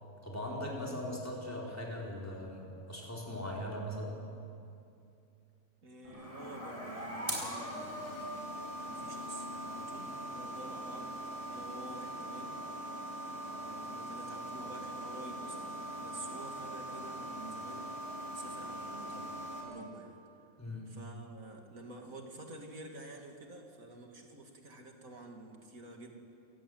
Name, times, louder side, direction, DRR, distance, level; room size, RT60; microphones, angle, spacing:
voice 1, 0.2-4.2 12.9-13.1 20.6-20.9, left 1 dB, 10° left, -3 dB, 4.4 m, -40 dB
voice 2, 5.8-8.4 8.8-11.1 11.5-12.6 13.5-15.6 15.9-17.9 18.3-20.1 20.9-26.1, right 2 dB, 80° right, 2 dB, 3.0 m, -49 dB
sound 1, 6.0-19.6, right 1 dB, 25° right, 5.8 m, -41 dB
27.5 x 15.5 x 9.4 m, 2.5 s
omnidirectional pair, 1.4 m